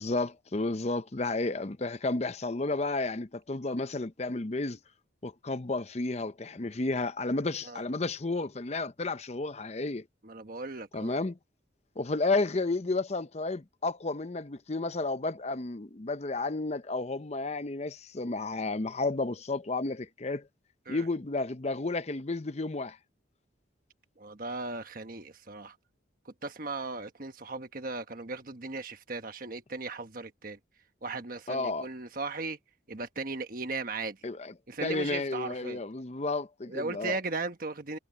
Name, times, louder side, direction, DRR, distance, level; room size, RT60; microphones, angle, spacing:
voice 1, 0.0-4.8 5.2-10.0 10.9-11.4 12.0-20.5 20.9-23.0 31.5-31.9 34.2-34.5 34.8-37.2, left 3 dB, 35° left, 0.7 m, -32 dB
voice 2, 10.2-11.2 20.9-21.1 24.2-25.8 26.2-30.6 31.0-32.6 32.9-34.3 34.7-35.8 36.6-38.0, right 3 dB, 45° right, 1.3 m, -37 dB
head